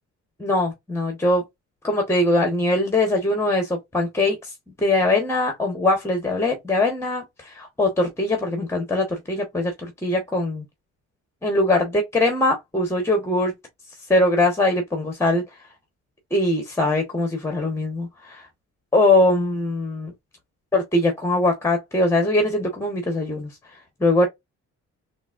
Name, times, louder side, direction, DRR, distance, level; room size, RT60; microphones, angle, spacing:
voice 1, 0.4-1.4 1.8-4.4 4.8-9.7 10.0-10.6 11.4-13.5 14.1-15.4 16.3-18.4 18.9-20.1 20.7-23.5 24.0-24.3, left 2 dB, 10° left, 1.0 m, -21 dB
3.8 x 2.5 x 2.4 m
cardioid pair, 90°, 30 cm